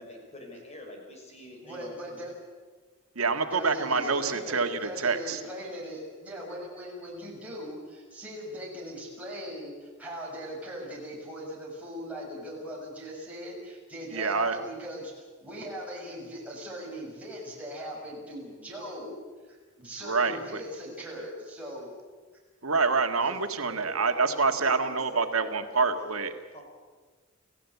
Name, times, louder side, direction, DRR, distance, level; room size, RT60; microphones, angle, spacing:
voice 1, 0.0-2.3 23.6-26.1 26.5-26.6, left 1 dB, 30° left, 2 dB, 5.9 m, -45 dB
voice 2, 1.6-2.3 3.4-19.1 19.5-21.9 23.2-23.4, equal, 5° right, -4 dB, 6.6 m, -40 dB
voice 3, 3.1-5.4 14.1-14.6 20.0-20.6 22.6-26.3, right 4 dB, 85° right, 7 dB, 1.8 m, -27 dB
28.0 x 16.0 x 8.3 m, 1.4 s
head